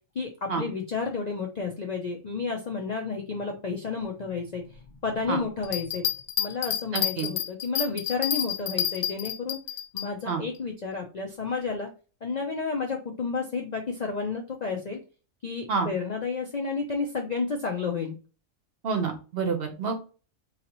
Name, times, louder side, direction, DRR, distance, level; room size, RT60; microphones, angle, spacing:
voice 1, 0.1-6.1 6.4-9.6 9.9-11.9 12.2-15.0 15.4-18.1, left 4 dB, 55° left, 1 dB, 0.4 m, -31 dB
Bell, 5.6-10.1 10.5-10.6, left 11 dB, 80° left, 1.0 m, -29 dB
voice 2, 6.9-7.3 10.3-10.4 15.7-15.9 18.8-19.9, right 5 dB, 55° right, 5 dB, 0.8 m, -28 dB
3.8 x 2.8 x 2.9 m, 0.35 s
omnidirectional pair, 1.4 m